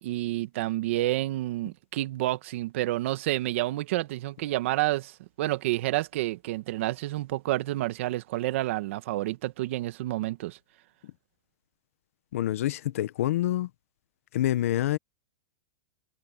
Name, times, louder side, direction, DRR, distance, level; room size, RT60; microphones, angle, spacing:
voice 1, 0.0-10.6, right 16 dB, 60° right, 1.5 m, -29 dB
voice 2, 12.3-13.7 14.3-15.0, left 13 dB, 75° left, 1.1 m, -26 dB
supercardioid pair, 150°, 8 cm